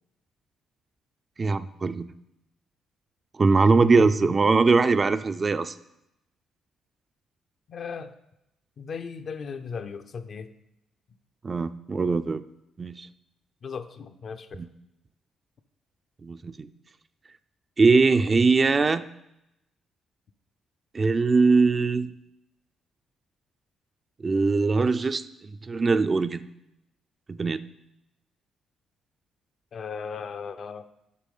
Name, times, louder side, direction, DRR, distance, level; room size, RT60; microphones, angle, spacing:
voice 1, 1.4-2.1 3.4-5.7 11.4-12.4 12.8-13.1 14.5-14.7 16.2-16.7 17.8-19.0 20.9-22.1 24.2-26.4 27.3-27.6, right 4 dB, 30° right, 11 dB, 0.4 m, -21 dB
voice 2, 3.8-4.3 7.7-8.1 8.8-10.5 13.6-14.6 29.7-30.9, left 6 dB, 55° left, 9 dB, 0.6 m, -36 dB
8.4 x 5.9 x 5.4 m, 0.85 s
cardioid pair, 90°, 0 cm